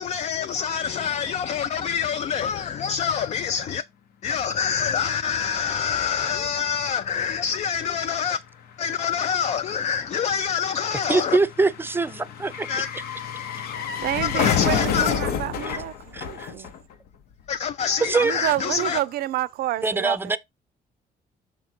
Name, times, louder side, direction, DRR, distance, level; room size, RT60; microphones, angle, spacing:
voice 1, 0.0-3.8 4.2-8.4 8.8-11.4 12.7-12.9 14.2-15.2 17.5-19.0, left 7 dB, 45° left, 0.4 m, -26 dB
sound 1, 6.5-6.6 6.7-17.2 17.4-17.5, left 8 dB, 80° left, 0.9 m, -30 dB
voice 2, 11.1-12.7 15.6-15.8 16.1-16.5 18.0-18.3 19.8-20.4, right 3 dB, 15° right, 0.5 m, -23 dB
voice 3, 14.0-16.7 18.2-20.4, right 14 dB, 80° right, 0.5 m, -29 dB
6.4 x 3.9 x 4.4 m
cardioid pair, 100°, 16 cm